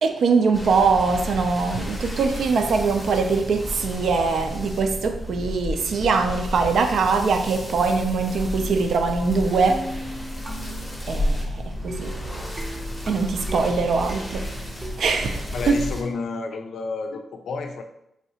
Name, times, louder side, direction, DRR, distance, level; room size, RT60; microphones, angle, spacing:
voice 1, 0.0-9.8 10.4-10.5 11.1-12.1 13.1-14.5 15.0-15.8, right 4 dB, 70° right, 6 dB, 0.4 m, -22 dB
sound 1, 0.5-16.0, left 1 dB, 15° left, 0.7 m, -32 dB
sound 2, 9.7-15.1, right 1 dB, 25° right, 0.6 m, -38 dB
voice 2, 15.5-17.8, left 4 dB, 70° left, 6 dB, 0.4 m, -30 dB
3.1 x 2.7 x 2.7 m, 0.81 s
wide cardioid pair, 120°, 0 cm